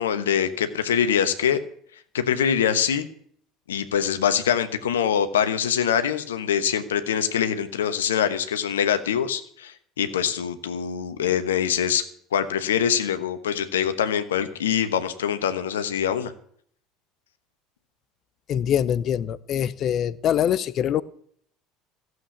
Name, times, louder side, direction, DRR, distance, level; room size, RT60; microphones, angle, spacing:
voice 1, 0.0-1.6 2.1-3.1 3.7-12.0 12.3-16.3, left 8 dB, 75° left, 10 dB, 1.1 m, -24 dB
voice 2, 18.5-21.0, left 9 dB, 45° left, 17 dB, 0.7 m, -24 dB
15.0 x 7.9 x 8.5 m, 0.62 s
figure-of-eight pair, 65°, 0 cm